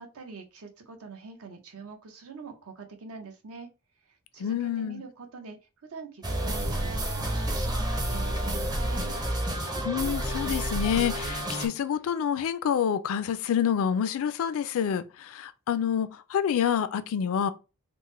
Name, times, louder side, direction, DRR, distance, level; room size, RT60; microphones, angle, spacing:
voice 1, 0.0-3.7 4.3-5.6 5.8-9.2, right 4 dB, 75° right, 0.7 m, -44 dB
voice 2, 4.4-5.0 9.8-17.5, left 8 dB, 65° left, 0.3 m, -27 dB
sound 1, 6.2-11.7, right 1 dB, 20° right, 0.5 m, -29 dB
3.5 x 2.1 x 3.1 m
head